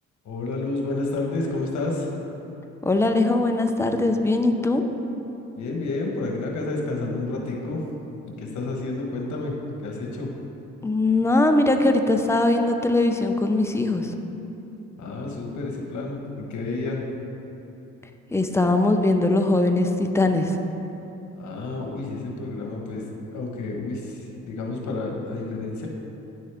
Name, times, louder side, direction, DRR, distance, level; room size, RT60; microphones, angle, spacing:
voice 1, 0.2-2.1 5.6-7.8 8.4-9.5 9.8-10.3 15.0-17.0 21.3-23.0 23.3-25.9, left 2 dB, 70° left, 0 dB, 1.3 m, -30 dB
voice 2, 2.8-4.8 10.8-14.1 18.3-20.6, left 2 dB, 10° left, 5 dB, 0.6 m, -21 dB
9.9 x 6.3 x 3.5 m, 3.0 s
cardioid pair, 90°, 30 cm